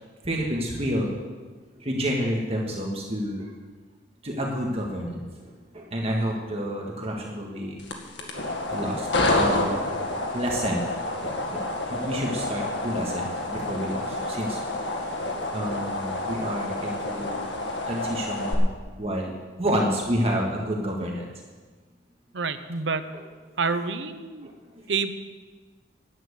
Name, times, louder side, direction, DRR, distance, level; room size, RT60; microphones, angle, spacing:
voice 1, 0.2-1.1 1.8-3.5 4.2-7.8 8.2-8.4 8.7-9.1 9.3-9.9 10.3-10.9 11.2-15.0 15.5-17.5 17.9-18.7 19.0-19.3 19.6-21.2 23.1-23.2 24.4-24.5 24.8-24.9, equal, 35° right, -1 dB, 1.6 m, -29 dB
sound 1, 7.8-18.5, left 2 dB, 85° left, 2.0 m, -29 dB
voice 2, 22.3-23.0 23.6-24.5 24.9-25.1, right 4 dB, 80° right, 10 dB, 0.9 m, -27 dB
11.0 x 9.0 x 8.1 m, 1.4 s
head